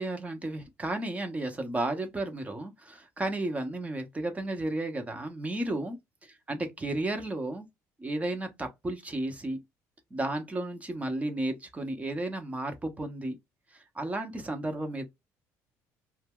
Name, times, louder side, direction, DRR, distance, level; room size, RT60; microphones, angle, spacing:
voice 1, 0.0-6.0 6.2-7.7 8.0-9.6 10.1-13.4 13.7-15.1, right 2 dB, 20° right, 0.8 m, -33 dB
2.2 x 2.0 x 3.5 m
supercardioid pair, 90°, 7 cm